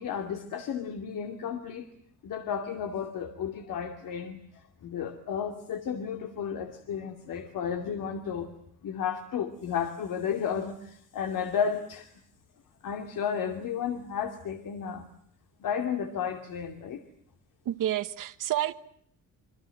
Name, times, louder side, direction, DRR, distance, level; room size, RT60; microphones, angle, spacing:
voice 1, 0.0-1.9 2.2-12.1 12.8-15.0 15.6-17.0, left 7 dB, 80° left, 2.7 m, -33 dB
voice 2, 17.6-18.7, right 12 dB, 70° right, 1.3 m, -29 dB
27.5 x 25.0 x 7.8 m
cardioid pair, 175°, 33 cm